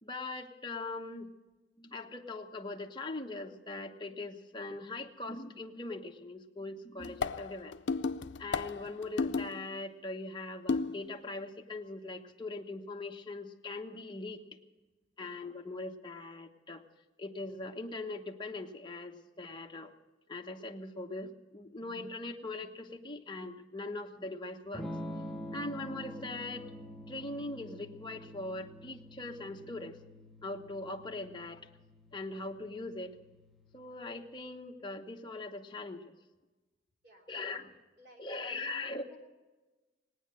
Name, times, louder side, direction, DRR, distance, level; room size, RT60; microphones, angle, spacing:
voice 1, 0.0-1.3 1.8-7.7 8.4-14.6 15.2-16.8 17.2-19.9 20.3-24.9 25.5-26.7 27.1-30.0 30.4-31.6 32.1-33.2 33.7-36.1 37.3-37.8 38.2-39.0, left 2 dB, 25° left, 3 dB, 1.1 m, -41 dB
sound 1, 7.0-9.7 10.7-11.2, left 4 dB, 75° left, 0.5 m, -33 dB
Electric guitar / Strum, 24.7-34.5, equal, ahead, 0.8 m, -47 dB
voice 2, 38.0-39.2, equal, 60° right, 0 dB, 3.3 m, -56 dB
19.0 x 9.4 x 7.5 m, 1.2 s
head